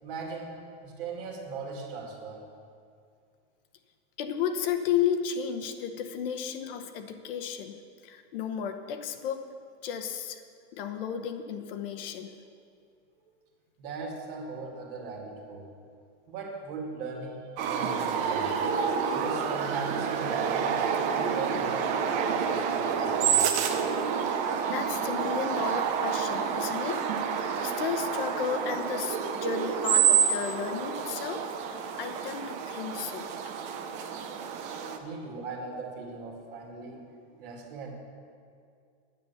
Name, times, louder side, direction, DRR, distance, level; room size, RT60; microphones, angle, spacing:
voice 1, 0.0-2.4 13.8-15.7 16.3-20.7 21.1-23.5 35.0-37.9, right 4 dB, 50° right, 1 dB, 2.2 m, -39 dB
voice 2, 4.2-7.8 8.0-9.5 9.8-10.4 10.7-12.3 24.7-33.3, left 8 dB, 55° left, 7 dB, 0.9 m, -33 dB
sound 1, 17.6-35.0, right 7 dB, 20° right, 0.5 m, -28 dB
10.0 x 9.4 x 7.0 m, 2.3 s
supercardioid pair, 170°, 34 cm